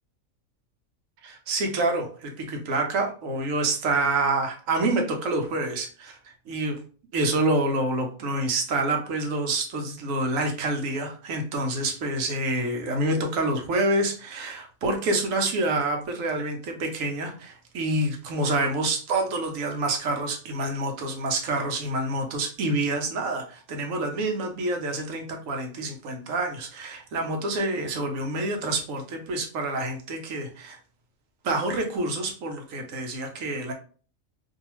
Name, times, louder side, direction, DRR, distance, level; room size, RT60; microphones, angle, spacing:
voice 1, 1.2-6.2 6.5-6.8 7.1-30.8 31.4-33.7, right 2 dB, 80° right, 3 dB, 1.1 m, -27 dB
2.6 x 2.3 x 2.9 m, 0.40 s
omnidirectional pair, 1.4 m